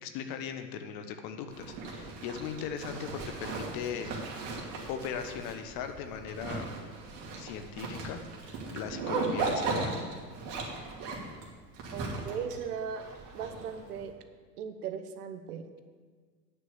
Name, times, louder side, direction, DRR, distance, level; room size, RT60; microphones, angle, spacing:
voice 1, 0.0-4.1 4.9-6.7 7.4-8.2 8.5-10.0, left 7 dB, 45° left, 8 dB, 1.1 m, -38 dB
Zipper (clothing), 1.5-14.0, right 3 dB, 45° right, 2.6 m, -37 dB
voice 2, 11.9-13.0 13.3-14.2 14.6-15.6, right 7 dB, 65° right, 8 dB, 1.1 m, -37 dB
9.8 x 6.3 x 7.0 m, 1.5 s
figure-of-eight pair, 85°, 48 cm